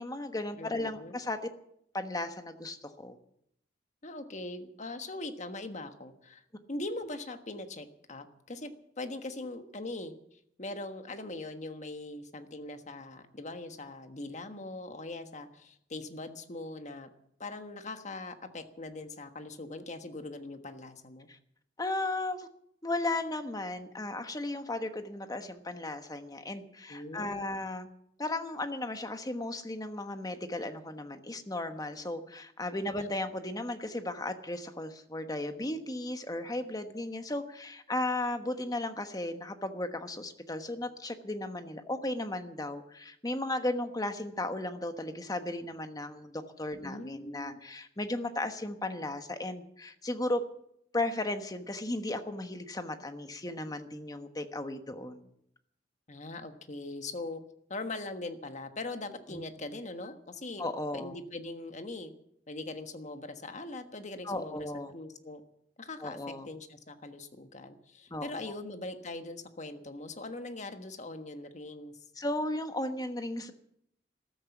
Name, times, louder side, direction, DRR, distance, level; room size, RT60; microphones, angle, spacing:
voice 1, 0.0-1.4 1.9-3.2 21.3-21.4 21.8-22.5 22.8-27.9 28.2-50.4 50.9-55.3 59.3-59.4 60.6-61.2 64.2-64.9 66.0-66.5 68.1-68.5 72.2-73.5, left 2 dB, 20° left, 8 dB, 1.3 m, -35 dB
voice 2, 0.6-1.2 4.0-6.4 6.7-8.7 9.0-17.1 17.4-21.3 26.9-27.7 32.9-33.1 36.9-37.0 46.8-47.6 56.1-57.4 57.7-60.6 60.9-62.1 62.5-65.4 65.8-66.2 66.4-71.9, left 2 dB, 45° left, 8 dB, 1.4 m, -41 dB
14.0 x 13.0 x 7.1 m, 0.73 s
head